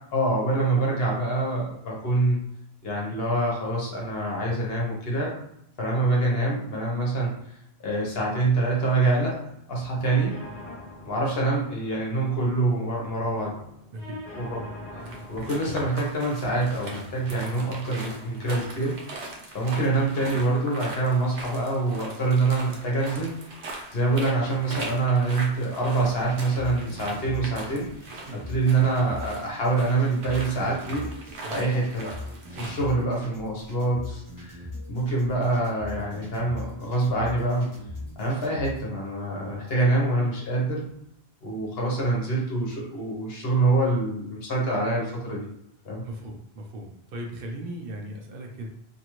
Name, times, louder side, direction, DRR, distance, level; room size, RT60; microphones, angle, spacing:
voice 1, 0.1-2.4 2.8-5.3 5.8-7.3 7.8-9.4 9.7-10.3 11.0-13.5 14.4-14.6 15.3-23.3 23.9-32.1 32.6-34.6 34.9-37.7 38.2-40.8 41.4-45.5 45.8-46.0, right 2 dB, 65° left, -3 dB, 1.1 m, -25 dB
sound 1, 10.0-18.0, left 1 dB, 40° left, 0.7 m, -44 dB
sound 2, 15.0-32.9, right 2 dB, 90° right, 1.0 m, -41 dB
sound 3, 25.9-38.8, left 2 dB, 20° left, 0.9 m, -40 dB
voice 2, 31.4-31.8 32.5-32.7 46.0-48.7, right 1 dB, 65° right, 1 dB, 0.7 m, -37 dB
2.7 x 2.4 x 2.9 m, 0.78 s
omnidirectional pair, 1.1 m